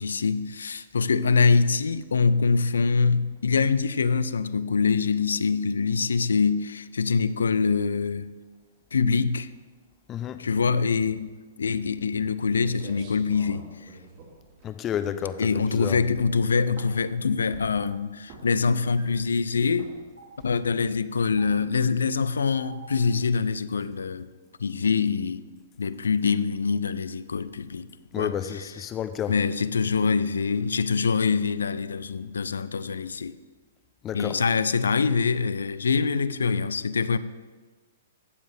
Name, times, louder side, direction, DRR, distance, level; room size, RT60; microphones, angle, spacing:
voice 1, 0.0-8.3 8.9-9.5 10.4-11.3 11.6-13.7 15.4-19.9 20.4-24.3 24.6-25.4 25.8-27.9 28.2-28.6 29.3-33.4 34.1-37.2, left 5 dB, 75° left, 0.4 m, -24 dB
voice 2, 10.1-10.4 14.6-16.0 28.1-29.3 34.0-34.4, left 9 dB, 25° left, 0.6 m, -31 dB
sound 1, 12.2-12.3 12.5-15.1 15.5-15.8 16.1-17.1 17.5-17.9 18.2-18.7 19.0-19.4 19.8-20.0 20.4-20.7, right 3 dB, 45° right, 3.1 m, -46 dB
Stream, 17.8-17.9 19.0-19.1 20.2-20.3 21.4-21.5 22.6-22.9, right 3 dB, 85° right, 2.1 m, -47 dB
15.5 x 7.3 x 3.4 m
figure-of-eight pair, 115°, 0 cm